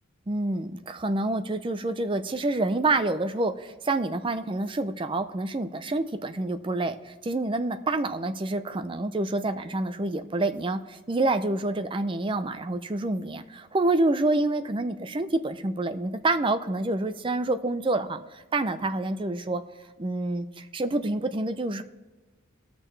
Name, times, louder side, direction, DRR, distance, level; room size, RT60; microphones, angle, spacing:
voice 1, 0.3-19.6 20.0-21.8, right 2 dB, 25° right, 9 dB, 0.5 m, -27 dB
18.5 x 6.4 x 3.3 m, 1.3 s
head